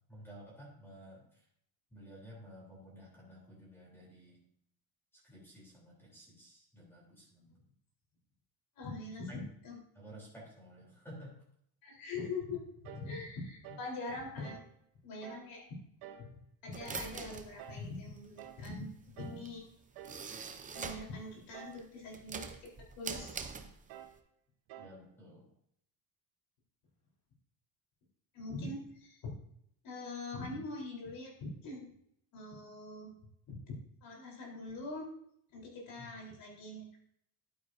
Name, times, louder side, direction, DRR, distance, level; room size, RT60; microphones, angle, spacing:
voice 1, 0.1-1.3 1.9-4.4 5.2-7.5 9.3-9.4 10.0-11.4 24.8-25.5 36.0-36.1, equal, 5° left, -5 dB, 3.5 m, -53 dB
voice 2, 8.8-9.8 11.8-14.6 15.0-15.7 16.2-18.9 19.2-19.6 20.7-22.5 23.0-23.4 28.3-29.3 29.8-31.9 32.3-33.1 33.5-33.7 34.0-35.1 35.5-36.9, left 3 dB, 65° left, -2 dB, 4.1 m, -43 dB
sound 1, 12.8-13.1 13.6-13.9 14.4-14.7 15.2-15.5 16.0-16.3 16.8-17.1 17.6-17.9 18.4-18.7 19.2-19.5 20.0-20.3 20.7-21.1 21.5-21.9 22.3-22.6 23.1-23.4 23.9-24.2 24.7-25.0, right 10 dB, 90° right, 1.0 m, -50 dB
sound 2, 16.7-21.2 21.5-24.1, right 5 dB, 20° right, 0.7 m, -44 dB
11.5 x 9.1 x 2.7 m, 0.70 s
cardioid pair, 160°, 37 cm